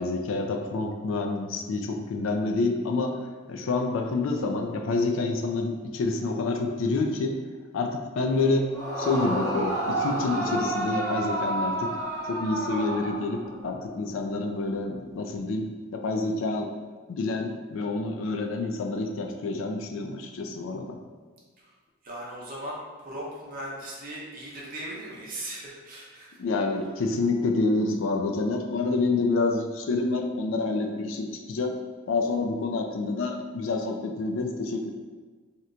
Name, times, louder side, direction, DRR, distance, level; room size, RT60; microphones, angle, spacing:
voice 1, 0.0-3.2 3.5-7.4 7.7-8.7 9.0-11.9 12.3-15.6 15.9-16.7 17.1-21.0 26.4-31.7 32.1-34.9, left 3 dB, 65° left, 3 dB, 0.3 m, -28 dB
Yell / Screaming, 8.7-13.6, right 1 dB, 20° left, 0.6 m, -30 dB
voice 2, 22.0-26.4, right 1 dB, 40° right, -4 dB, 0.7 m, -38 dB
2.9 x 2.1 x 3.7 m, 1.5 s
head